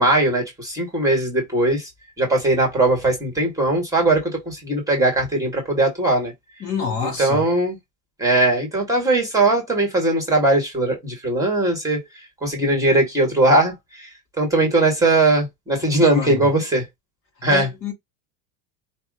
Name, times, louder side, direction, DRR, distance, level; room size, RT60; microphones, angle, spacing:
voice 1, 0.0-1.9 2.2-6.3 7.2-7.8 8.2-12.0 12.4-16.8 17.4-17.7, right 2 dB, 10° right, 1.8 m, -19 dB
voice 2, 6.6-7.5 15.8-16.5 17.5-17.9, left 6 dB, 30° left, 2.4 m, -28 dB
5.9 x 2.4 x 3.7 m
cardioid pair, 165°, 42 cm